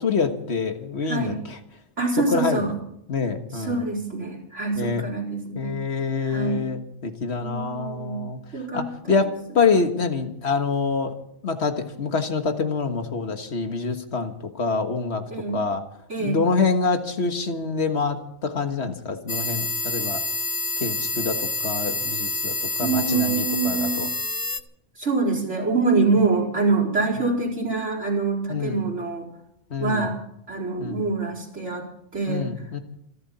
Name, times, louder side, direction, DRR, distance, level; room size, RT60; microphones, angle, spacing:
voice 1, 0.0-1.3 2.3-2.6 3.1-3.8 4.8-5.0 5.6-8.4 8.7-11.1 11.4-15.2 15.5-15.8 16.2-20.2 20.8-24.1 28.5-28.8 29.7-30.1 30.8-31.0 32.3-32.8, left 4 dB, 65° left, 6 dB, 1.8 m, -26 dB
voice 2, 1.0-1.4 2.0-2.7 3.5-5.8 6.2-6.7 7.4-8.2 8.5-9.3 15.3-15.6 16.1-16.4 22.8-24.0 25.0-29.3 29.8-30.1 30.5-31.9 32.1-32.8, right 3 dB, 85° right, -4 dB, 4.8 m, -25 dB
sound 1, 19.3-24.6, left 3 dB, 25° left, 0.5 m, -28 dB
27.0 x 11.5 x 4.3 m, 0.75 s
omnidirectional pair, 1.2 m